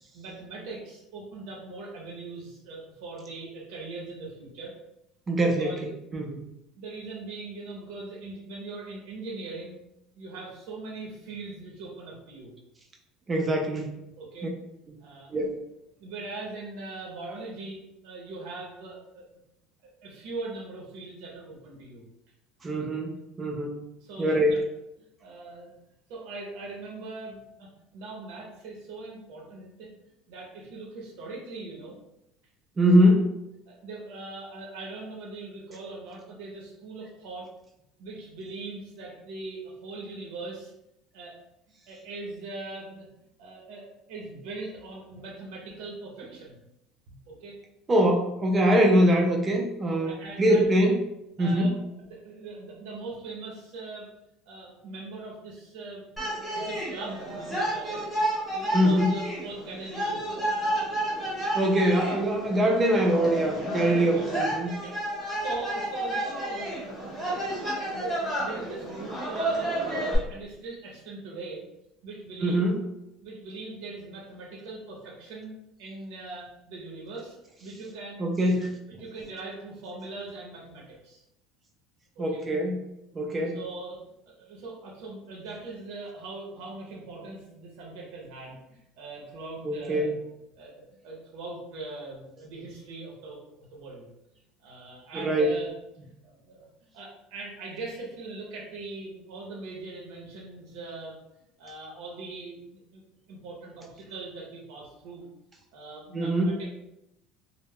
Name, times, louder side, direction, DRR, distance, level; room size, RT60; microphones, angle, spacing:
voice 1, 0.1-4.7 5.4-5.8 6.8-9.8 10.1-12.5 14.2-14.5 15.0-15.3 16.0-19.2 19.8-22.0 24.0-24.6 25.0-25.7 26.1-29.9 30.3-32.0 33.7-37.5 38.0-40.7 41.1-41.4 41.9-43.1 43.4-46.6 47.1-47.6 49.9-50.7 51.4-51.7 52.0-54.1 54.5-56.1 56.3-58.0 58.5-60.3 64.1-64.3 64.8-65.0 65.4-69.9 70.1-71.7 72.0-72.7 73.2-78.3 79.0-81.2 82.2-82.4 83.4-90.1 90.6-94.1 94.6-95.7 96.2-96.7 96.9-101.2 101.6-103.0 103.3-105.3 105.7-106.7, right 3 dB, 65° right, -3 dB, 0.6 m, -41 dB
voice 2, 5.3-6.4 13.3-13.9 15.3-15.6 22.6-23.8 24.2-24.5 32.8-33.3 47.9-51.0 51.4-51.8 58.7-59.2 61.5-64.8 72.4-72.8 78.2-79.0 82.2-82.8 83.1-83.6 89.6-90.1 95.2-95.5 106.1-106.6, equal, 20° right, 1 dB, 0.3 m, -23 dB
sound 1, 56.2-70.2, right 1 dB, ahead, 0.9 m, -31 dB
2.2 x 2.0 x 3.4 m, 0.86 s
cardioid pair, 160°, 0 cm